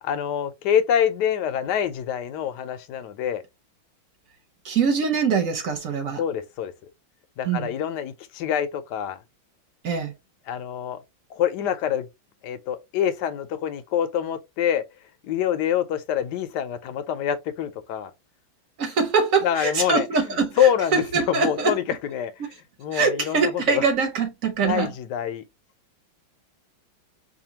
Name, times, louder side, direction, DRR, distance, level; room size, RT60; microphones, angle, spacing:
voice 1, 0.0-3.4 6.2-6.7 7.4-9.2 10.5-11.0 11.3-12.1 12.4-14.8 15.2-18.1 19.4-23.9 24.6-25.4, left 9 dB, 70° left, 1.1 m, -26 dB
voice 2, 4.6-6.2 7.4-7.7 9.8-10.1 18.8-21.7 22.9-24.9, right 5 dB, 50° right, 1.3 m, -23 dB
5.0 x 2.6 x 2.8 m
omnidirectional pair, 2.2 m